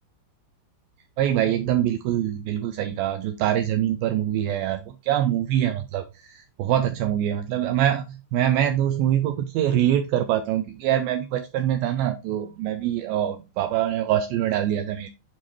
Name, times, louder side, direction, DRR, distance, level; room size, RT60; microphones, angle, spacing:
voice 1, 1.2-8.1 8.3-15.1, right 11 dB, 85° right, 8 dB, 2.1 m, -24 dB
8.8 x 4.5 x 3.1 m, 0.27 s
omnidirectional pair, 4.8 m